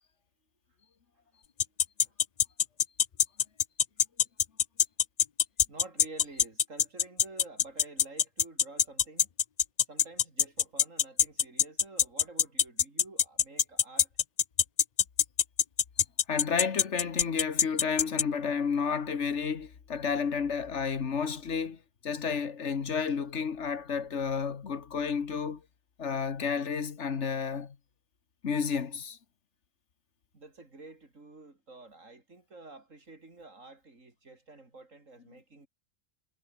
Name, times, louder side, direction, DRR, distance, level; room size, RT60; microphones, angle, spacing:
sound 1, 1.6-18.2, left 7 dB, 45° left, 0.6 m, -23 dB
voice 1, 5.7-9.3 9.9-14.1 30.3-35.7, right 3 dB, 85° right, 4.4 m, -50 dB
voice 2, 16.3-25.6 26.0-27.7 28.4-29.2, left 6 dB, 65° left, 1.7 m, -31 dB
omnidirectional pair, 1.3 m